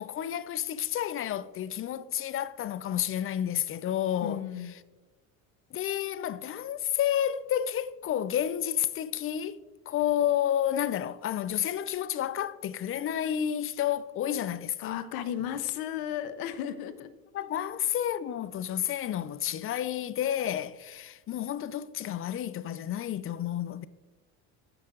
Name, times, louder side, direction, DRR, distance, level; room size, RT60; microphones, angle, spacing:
voice 1, 0.0-4.4 5.7-9.6 9.9-15.0 17.3-23.8, left 10 dB, 35° left, 0.5 m, -30 dB
voice 2, 4.2-4.7 14.8-17.1 17.5-17.7, left 10 dB, 70° left, 0.8 m, -34 dB
14.5 x 5.7 x 2.5 m
supercardioid pair, 85°, 38 cm